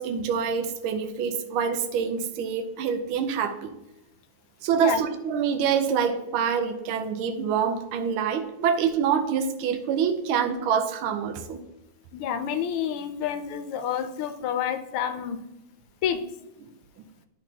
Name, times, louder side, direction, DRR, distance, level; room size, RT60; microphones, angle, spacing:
voice 1, 0.0-3.7 4.6-11.6 16.6-16.7, right 7 dB, 75° right, 7 dB, 1.5 m, -26 dB
voice 2, 12.1-15.4 16.0-16.2, left 9 dB, 80° left, 9 dB, 1.5 m, -29 dB
10.0 x 6.0 x 2.8 m, 0.94 s
omnidirectional pair, 2.4 m